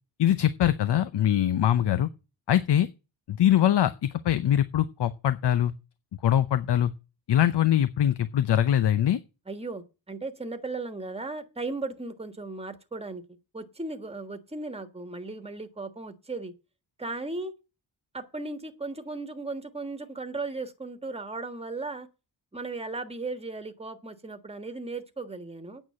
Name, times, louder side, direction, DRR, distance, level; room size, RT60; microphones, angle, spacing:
voice 1, 0.2-2.1 2.5-2.9 3.3-5.7 6.2-6.9 7.3-9.2, left 11 dB, 60° left, 0.7 m, -23 dB
voice 2, 9.5-13.2 13.5-16.5 17.0-17.5 18.1-22.1 22.5-25.8, right 3 dB, 15° right, 1.4 m, -36 dB
9.1 x 6.4 x 8.5 m
wide cardioid pair, 115°, 46 cm